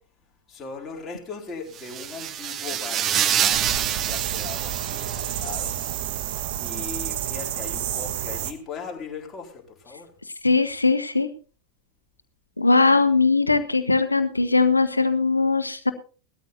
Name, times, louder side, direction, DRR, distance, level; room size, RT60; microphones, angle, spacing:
voice 1, 0.5-5.8 6.2-10.1, left 5 dB, 20° left, -1 dB, 4.0 m, -39 dB
sound 1, 1.7-5.6, right 10 dB, 30° right, 0.7 m, -27 dB
sound 2, 3.5-8.5, right 11 dB, 50° right, 1.2 m, -30 dB
voice 2, 10.4-11.3 12.6-15.9, left 3 dB, 80° left, 11 dB, 1.1 m, -20 dB
19.0 x 13.0 x 2.7 m, 0.38 s
figure-of-eight pair, 90°, 0 cm